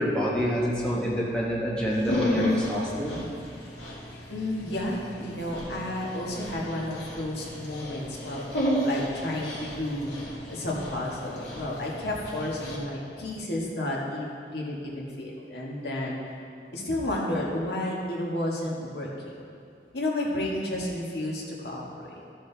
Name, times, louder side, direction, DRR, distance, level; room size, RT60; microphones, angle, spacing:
voice 1, 0.0-3.2, equal, 5° left, -5 dB, 1.1 m, -27 dB
Dog, 1.9-12.8, left 1 dB, 90° left, 2.0 m, -33 dB
voice 2, 4.3-8.5 8.8-16.2 16.7-19.3 19.9-22.2, left 1 dB, 75° left, -3 dB, 1.6 m, -32 dB
13.5 x 6.5 x 3.4 m, 2.5 s
head